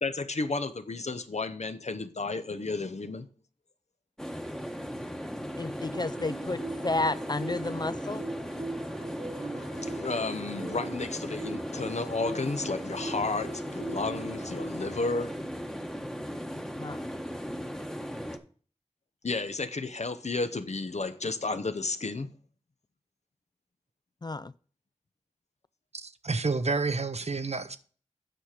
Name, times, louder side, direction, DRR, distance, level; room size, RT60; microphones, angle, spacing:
voice 1, 0.0-3.3 9.5-15.5 19.2-22.3, left 3 dB, 65° left, 0.8 m, -32 dB
sound 1, 4.2-18.4, equal, 5° left, 1.1 m, -37 dB
voice 2, 5.6-8.2 16.8-17.1 24.2-24.5, left 2 dB, 35° left, 0.4 m, -31 dB
sound 2, 5.9-14.7, right 3 dB, 85° right, 1.0 m, -41 dB
voice 3, 25.9-27.8, right 3 dB, 60° right, 0.7 m, -29 dB
9.0 x 5.9 x 4.9 m
wide cardioid pair, 45°, 12 cm